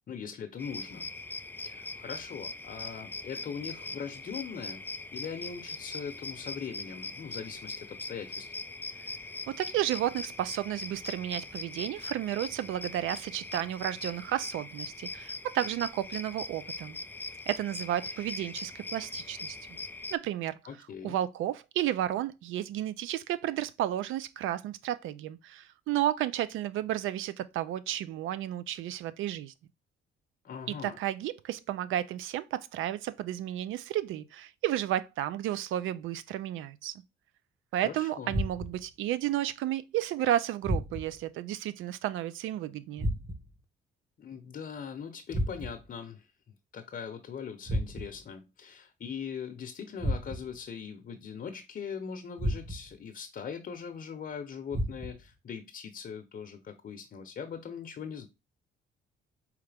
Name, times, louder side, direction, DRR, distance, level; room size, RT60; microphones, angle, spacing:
voice 1, 0.1-1.1 1.6-4.8 5.1-8.5 20.7-21.2 30.4-31.0 37.8-38.3 44.2-46.3 46.7-58.3, left 7 dB, 50° left, 0.8 m, -41 dB
sound 1, 0.6-20.1, left 3 dB, 10° left, 0.3 m, -41 dB
voice 2, 9.5-17.0 17.5-19.6 20.1-20.6 21.0-29.5 30.7-36.9 37.7-43.1, right 12 dB, 85° right, 0.5 m, -32 dB
sound 2, 38.3-38.9 40.6-41.3 43.0-43.6 45.3-46.0 47.7-48.3 50.0-50.6 52.4-53.0 54.7-55.3, equal, 15° right, 1.0 m, -33 dB
4.8 x 3.2 x 3.3 m
cardioid pair, 90°, 20 cm